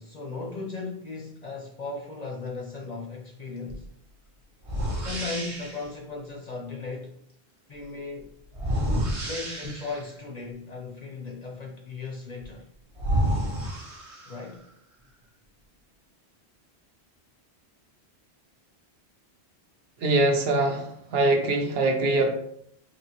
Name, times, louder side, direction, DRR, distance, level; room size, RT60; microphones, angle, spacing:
voice 1, 0.0-3.9 5.0-7.2 7.7-8.3 9.2-12.7 14.3-14.6, left 3 dB, 50° left, 0.5 m, -37 dB
sound 1, 3.7-3.9 4.6-5.9 8.5-10.1 12.4-12.5 13.0-14.6, equal, 35° right, 0.7 m, -29 dB
voice 2, 20.0-22.4, right 2 dB, 65° right, 0.9 m, -23 dB
4.5 x 2.8 x 2.8 m
omnidirectional pair, 1.1 m